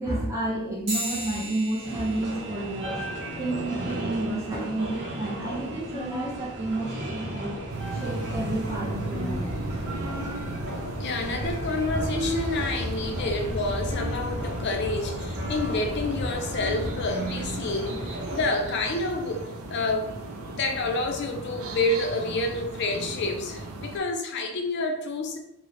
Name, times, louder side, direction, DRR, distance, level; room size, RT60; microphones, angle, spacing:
voice 1, 0.0-3.1 3.4-7.6 7.9-9.5, right 2 dB, 15° right, -7 dB, 0.5 m, -30 dB
sound 1, 0.9-10.7, right 1 dB, 30° right, 0.9 m, -41 dB
sound 2, 1.8-18.4, equal, 55° right, 0.9 m, -33 dB
sound 3, 7.7-24.0, right 2 dB, 75° right, 0.4 m, -37 dB
voice 2, 11.0-20.1 20.4-25.4, left 2 dB, 55° left, 3 dB, 0.4 m, -29 dB
3.0 x 2.0 x 2.5 m, 0.80 s
head